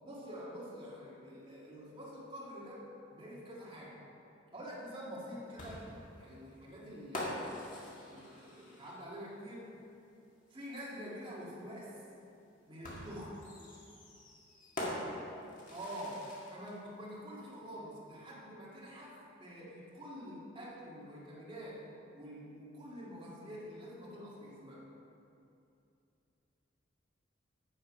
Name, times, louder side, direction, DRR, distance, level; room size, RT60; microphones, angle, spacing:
voice 1, 0.0-4.0 4.5-5.9 6.1-7.7 8.1-9.8 10.5-12.0 12.7-13.5 15.7-24.9, equal, 25° right, -6 dB, 1.8 m, -47 dB
sound 1, 5.6-9.2 10.7-10.8 12.8-16.7, left 1 dB, 40° left, 1.9 m, -44 dB
9.2 x 6.7 x 5.2 m, 2.7 s
head